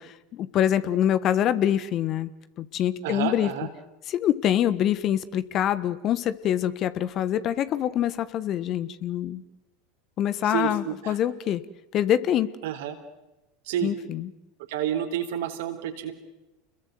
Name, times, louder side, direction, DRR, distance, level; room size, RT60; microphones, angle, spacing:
voice 1, 0.0-2.3 2.6-3.5 4.1-9.4 10.2-11.6 11.9-12.5 13.8-14.3, left 11 dB, 40° left, 15 dB, 1.4 m, -25 dB
voice 2, 3.0-3.7 10.4-11.2 12.6-13.0 13.7-13.9 14.7-16.1, right 10 dB, 65° right, 6 dB, 3.6 m, -29 dB
29.5 x 21.5 x 7.9 m, 0.99 s
hypercardioid pair, 85°, 0 cm